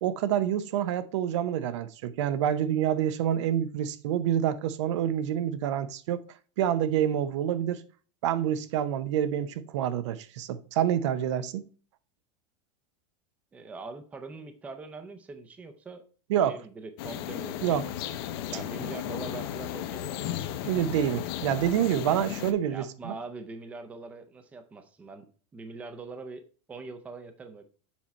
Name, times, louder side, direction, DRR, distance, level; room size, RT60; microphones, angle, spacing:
voice 1, 0.0-6.2 6.6-7.8 8.2-11.6 16.3-16.6 17.6-17.8 20.6-23.1, right 10 dB, 75° right, 0.7 m, -27 dB
voice 2, 13.5-16.0 16.5-17.8 18.5-20.3 22.7-25.3 25.5-27.6, right 3 dB, 10° right, 0.5 m, -42 dB
sound 1, 17.0-22.5, left 11 dB, 55° left, 0.7 m, -35 dB
7.2 x 4.4 x 4.1 m
supercardioid pair, 175°, 15 cm